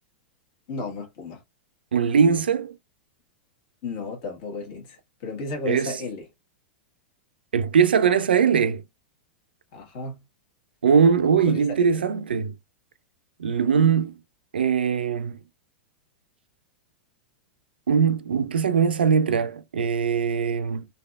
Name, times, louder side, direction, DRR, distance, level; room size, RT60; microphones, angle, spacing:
voice 1, 0.7-1.4 3.8-6.3 9.7-10.2 11.5-11.9, left 3 dB, 45° left, 1.4 m, -33 dB
voice 2, 1.9-2.8 5.7-6.0 7.5-8.8 10.8-12.5 13.4-14.2 14.5-15.4 17.9-20.9, right 6 dB, 75° right, 0.4 m, -21 dB
3.3 x 2.6 x 2.3 m
figure-of-eight pair, 95°, 5 cm